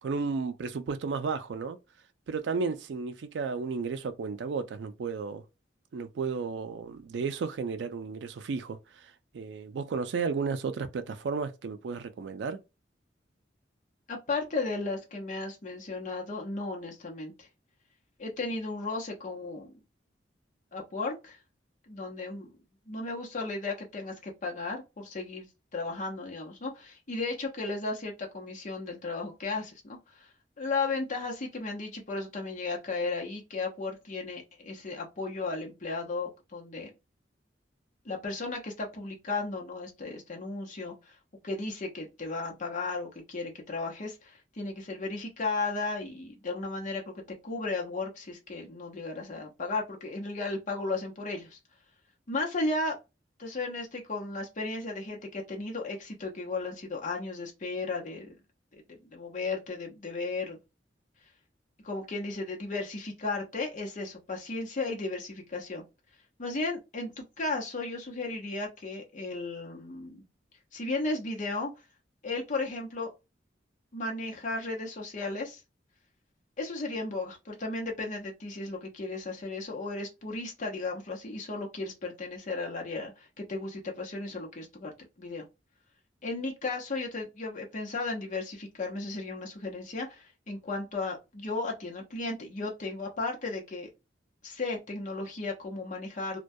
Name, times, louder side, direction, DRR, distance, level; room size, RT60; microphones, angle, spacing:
voice 1, 0.0-1.8 2.3-5.4 5.9-12.6, right 5 dB, 75° right, 0.4 m, -33 dB
voice 2, 14.1-17.5 18.2-19.7 20.7-21.4 21.9-22.6 22.9-25.5 25.7-30.3 30.6-36.9 38.0-41.2 41.4-51.6 52.3-53.0 53.4-58.4 58.7-60.6 61.8-65.8 66.4-70.2 70.7-71.7 72.2-73.1 73.9-75.6 76.6-84.9 85.2-85.4 86.2-93.9 94.4-96.4, left 3 dB, 45° left, 0.7 m, -35 dB
2.2 x 2.2 x 2.6 m
head